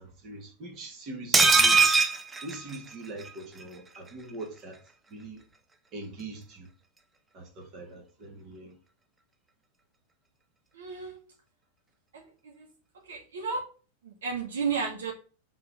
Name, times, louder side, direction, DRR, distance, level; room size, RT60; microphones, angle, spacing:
voice 1, 0.0-1.9 2.4-4.8 5.1-5.4 5.9-6.7 7.3-8.7, right 2 dB, 35° right, 2.3 m, -42 dB
sound 1, 1.3-3.3 3.6-3.7 4.0-4.1, right 4 dB, 15° right, 0.7 m, -22 dB
voice 2, 10.7-11.2 12.1-12.7 13.1-13.6 14.0-15.1, right 5 dB, 65° right, 2.0 m, -33 dB
5.8 x 4.5 x 5.9 m
figure-of-eight pair, 90°, 0 cm